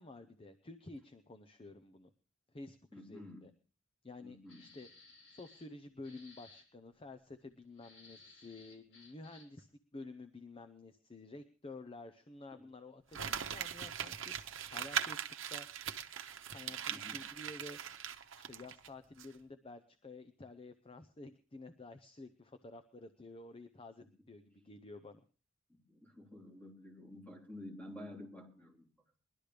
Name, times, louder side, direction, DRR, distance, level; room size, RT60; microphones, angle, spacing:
voice 1, 0.0-2.1 2.5-3.5 4.0-4.9 5.3-14.3 14.7-15.2 15.5-15.7 16.5-17.8 18.0-25.2, left 2 dB, 30° left, 8 dB, 0.7 m, -51 dB
voice 2, 2.9-3.5 4.2-4.7 12.5-12.6 16.9-17.3 25.9-28.9, left 1 dB, 10° left, -1 dB, 3.2 m, -50 dB
sound 1, 4.5-5.7 6.0-6.6 7.7-9.6, left 3 dB, 90° left, 6.0 m, -59 dB
Crumpling crinkling, 13.1-18.9 19.2-19.3, right 8 dB, 75° right, 0.9 m, -40 dB
21.5 x 12.0 x 3.4 m, 0.37 s
head